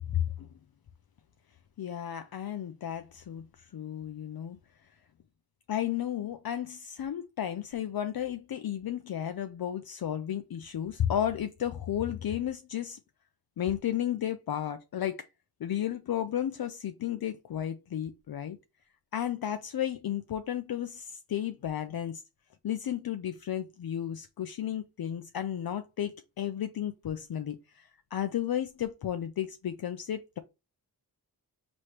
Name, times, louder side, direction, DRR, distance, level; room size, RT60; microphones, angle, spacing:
voice 1, 0.1-0.5 1.8-4.6 5.7-13.0 13.6-15.3 15.6-18.6 19.1-22.2 22.6-30.4, left 10 dB, 65° left, 0.5 m, -33 dB
4.7 x 3.1 x 2.9 m
cardioid pair, 55°, 40 cm